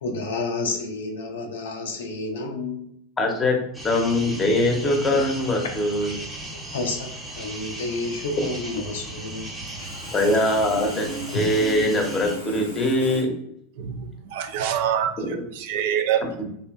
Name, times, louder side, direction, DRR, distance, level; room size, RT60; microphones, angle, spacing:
voice 1, 0.0-2.9 5.1-5.2 6.7-9.9, left 3 dB, 65° left, 3 dB, 0.5 m, -30 dB
voice 2, 3.2-3.6 3.8-6.1 10.1-13.3 15.2-15.3 16.4-16.5, left 1 dB, 25° left, 2 dB, 0.7 m, -22 dB
sound 1, 3.7-12.4, right 1 dB, 10° right, 0.8 m, -37 dB
Sawing, 9.7-13.2, right 2 dB, 90° left, 0.8 m, -36 dB
voice 3, 13.8-16.2, right 9 dB, 55° right, 6 dB, 0.3 m, -26 dB
3.1 x 2.6 x 2.3 m, 0.72 s
figure-of-eight pair, 85°, 0 cm